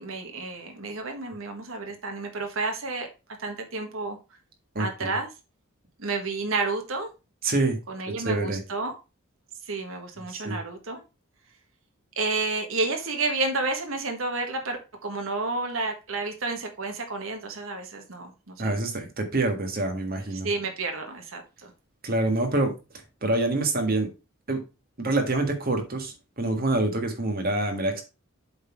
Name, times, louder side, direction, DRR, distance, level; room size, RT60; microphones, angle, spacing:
voice 1, 0.0-3.1 3.4-4.2 4.8-5.3 6.0-7.1 7.9-8.9 9.7-11.0 12.2-18.8 20.4-21.7, right 3 dB, 70° right, 1.4 m, -30 dB
voice 2, 4.8-5.2 7.4-7.8 8.2-8.6 10.3-10.6 18.6-20.5 22.0-22.7 23.2-24.1 24.5-24.6 25.0-28.0, right 2 dB, 45° right, 1.7 m, -26 dB
7.8 x 4.1 x 4.5 m
head